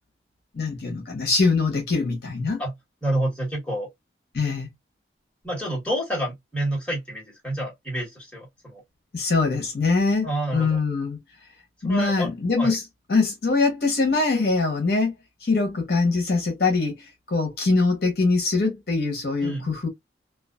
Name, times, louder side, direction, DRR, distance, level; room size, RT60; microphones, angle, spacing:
voice 1, 0.5-2.6 4.3-4.7 9.1-10.3 10.5-11.2 11.8-12.8 13.1-15.1 15.4-19.9, left 3 dB, 55° left, 0.8 m, -23 dB
voice 2, 3.0-3.9 5.4-8.8 10.2-10.8 11.8-12.3 12.6-12.7 19.4-19.7, right 1 dB, 5° left, 1.3 m, -28 dB
2.3 x 2.3 x 2.2 m
head